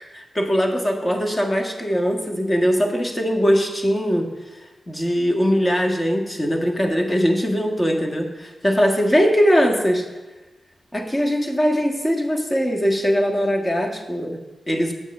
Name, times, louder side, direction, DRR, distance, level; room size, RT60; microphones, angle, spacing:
voice 1, 0.4-4.3 4.9-10.0 10.9-14.9, equal, 25° left, 2 dB, 1.6 m, -21 dB
8.2 x 6.7 x 6.5 m, 1.1 s
cardioid pair, 80°, 0 cm